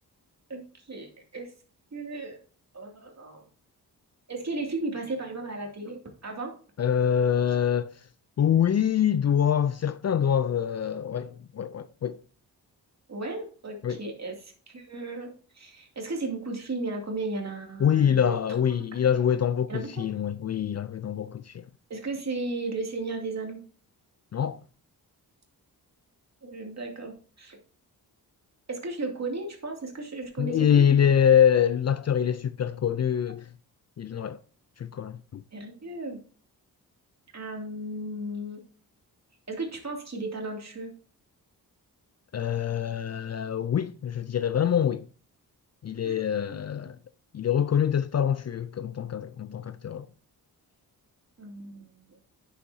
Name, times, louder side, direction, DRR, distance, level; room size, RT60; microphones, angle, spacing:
voice 1, 0.5-1.5 1.9-2.4 2.7-3.4 4.3-6.5 13.1-18.6 19.7-20.1 21.9-23.6 26.4-27.6 28.7-30.9 35.5-36.2 37.3-38.6 39.5-40.9 46.0-46.6 51.4-52.2, right 2 dB, 45° right, 2.5 m, -35 dB
voice 2, 6.8-7.9 8.4-12.2 13.8-14.0 17.8-21.6 24.3-24.6 30.4-33.5 34.0-34.4 34.8-35.4 42.3-45.0 45.8-47.0 47.3-50.1, left 8 dB, 45° left, 0.5 m, -25 dB
8.9 x 7.0 x 2.7 m
cardioid pair, 65°, 38 cm